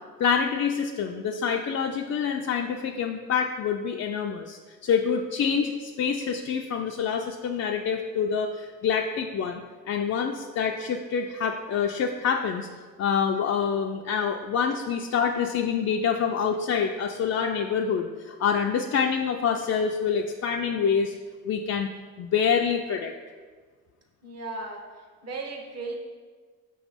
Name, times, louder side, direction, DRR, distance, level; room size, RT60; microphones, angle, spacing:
voice 1, 0.2-12.7 13.0-21.1 21.5-21.9 22.2-23.1, left 6 dB, 50° left, 1 dB, 0.4 m, -26 dB
voice 2, 24.2-24.8 25.2-26.0, right 3 dB, 45° right, 1 dB, 1.1 m, -35 dB
5.9 x 3.1 x 5.1 m, 1.5 s
cardioid pair, 85°, 35 cm